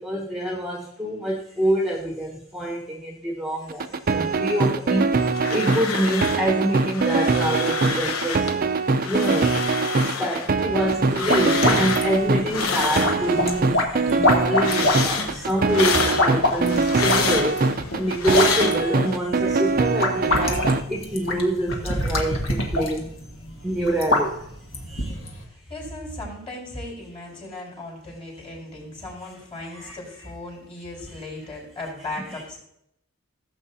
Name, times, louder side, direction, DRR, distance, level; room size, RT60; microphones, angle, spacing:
voice 1, 0.0-8.7 9.0-9.7 10.0-23.1 23.6-24.4 24.9-25.2 29.7-30.0 32.3-32.4, equal, ahead, -2 dB, 1.1 m, -26 dB
sound 1, 3.7-20.8, right 4 dB, 40° right, 0.5 m, -23 dB
sound 2, 5.1-6.5 6.8-8.6 8.9-13.6 14.0-19.2, left 5 dB, 85° left, 1.1 m, -28 dB
sound 3, 10.9-25.4, left 2 dB, 65° left, 1.7 m, -27 dB
voice 2, 24.9-32.6, left 2 dB, 25° left, -1 dB, 4.0 m, -37 dB
16.5 x 7.8 x 2.8 m, 0.74 s
head